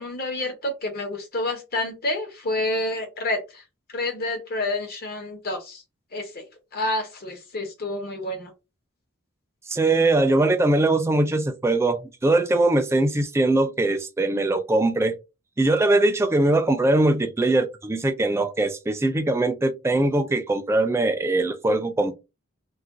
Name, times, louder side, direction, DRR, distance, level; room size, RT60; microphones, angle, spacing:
voice 1, 0.0-3.6 3.9-5.8 6.1-6.4 6.7-8.5, left 2 dB, 45° left, 0.8 m, -29 dB
voice 2, 9.7-15.2 15.6-22.1, right 2 dB, 10° right, 0.3 m, -21 dB
2.4 x 2.2 x 3.6 m
head